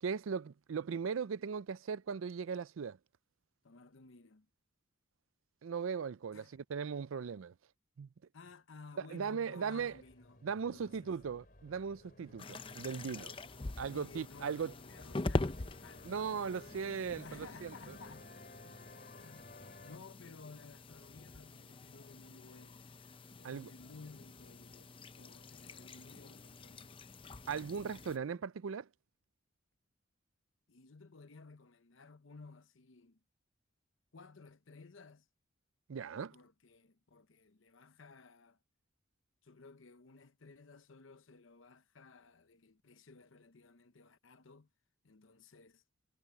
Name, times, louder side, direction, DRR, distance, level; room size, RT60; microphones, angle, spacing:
voice 1, 0.0-3.0 5.6-7.5 8.0-8.1 9.1-9.9 10.4-13.4 13.8-14.7 16.0-17.7 23.4-23.7 27.5-28.9 35.9-36.4, right 6 dB, 80° right, 0.4 m, -38 dB
voice 2, 3.6-4.5 6.3-6.5 8.3-11.1 13.9-18.4 19.2-22.9 23.3-24.9 25.2-27.0 28.2-28.4 30.7-33.2 34.1-35.3 36.3-38.6 39.4-44.7 45.0-45.8, left 4 dB, 75° left, 0.9 m, -56 dB
sound 1, 9.8-20.0, left 2 dB, 45° left, 3.4 m, -57 dB
sound 2, 12.4-28.2, left 2 dB, 25° left, 0.6 m, -44 dB
head